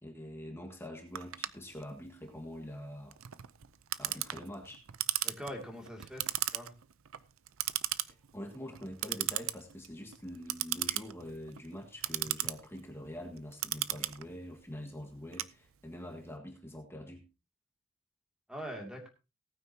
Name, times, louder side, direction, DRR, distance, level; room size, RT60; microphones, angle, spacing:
voice 1, 0.0-3.2 4.0-4.8 8.1-17.2, left 1 dB, 10° left, 2 dB, 1.7 m, -45 dB
Clock, 1.2-16.1, right 14 dB, 80° right, 0.6 m, -37 dB
voice 2, 5.2-6.2 6.5-6.7 18.5-19.1, equal, 5° right, 2 dB, 2.5 m, -42 dB
18.5 x 9.4 x 2.8 m, 0.29 s
head